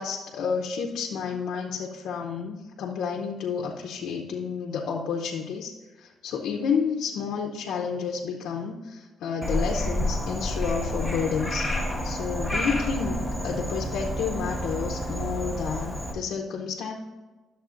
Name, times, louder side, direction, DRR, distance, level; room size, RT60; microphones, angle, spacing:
voice 1, 0.0-11.7 12.0-16.9, left 6 dB, 80° left, 0 dB, 0.7 m, -30 dB
Frog, 9.4-16.1, equal, 5° right, 1.5 m, -30 dB
Wind instrument woodwind instrument, 11.0-15.5, right 1 dB, 50° right, 1.8 m, -42 dB
11.5 x 7.2 x 2.5 m, 1.2 s
cardioid pair, 90°, 0 cm